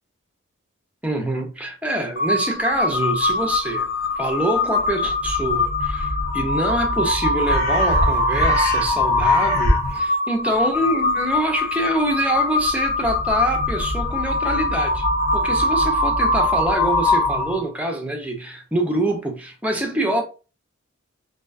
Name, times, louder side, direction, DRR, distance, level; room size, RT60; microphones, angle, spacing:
voice 1, 1.0-3.9 4.2-15.1 15.3-20.2, right 1 dB, 5° right, 0.4 m, -25 dB
Crow, 2.2-17.7, left 2 dB, 50° left, 0.8 m, -21 dB
2.5 x 2.2 x 2.3 m
head